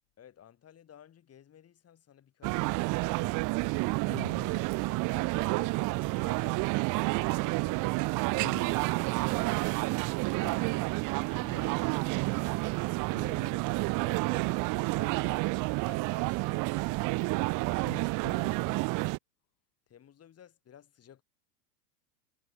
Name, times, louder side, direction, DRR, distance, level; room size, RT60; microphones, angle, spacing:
voice 1, 0.2-3.6 4.2-4.6 4.9-7.9 8.4-10.0 10.3-10.9 11.3-12.7 13.2-15.5 15.7-17.7 19.9-21.2, left 9 dB, 30° left, 7.4 m, -54 dB
sound 1, 2.4-19.2, right 25 dB, 40° right, 1.0 m, -30 dB
voice 2, 4.1-4.5 8.4-8.7 10.4-10.8 11.4-11.8 13.1-13.5 17.8-19.0, left 32 dB, 50° left, 3.2 m, -47 dB
hypercardioid pair, 90°, 49 cm